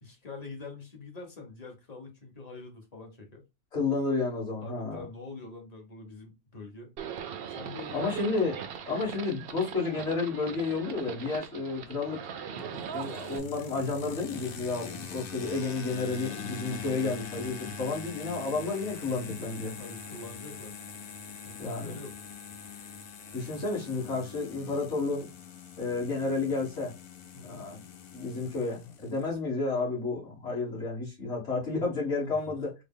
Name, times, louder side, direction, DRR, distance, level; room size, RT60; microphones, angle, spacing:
voice 1, 0.0-3.5 4.6-6.9 7.5-8.1 8.9-9.0 12.5-12.9 16.8-17.1 19.8-20.8 21.4-22.1 27.3-27.7 32.2-32.4, left 3 dB, 35° left, 0.8 m, -45 dB
voice 2, 3.7-5.0 7.9-8.5 8.9-12.2 12.9-19.7 21.6-21.9 23.3-25.3 25.8-26.9 27.5-27.8 28.1-32.8, left 3 dB, 50° left, 1.9 m, -31 dB
Livestock farm animals working animals, 7.0-13.4, right 8 dB, 80° right, 0.5 m, -40 dB
sound 1, 12.6-29.3, left 5 dB, 65° left, 0.5 m, -43 dB
3.9 x 2.1 x 3.6 m
omnidirectional pair, 1.5 m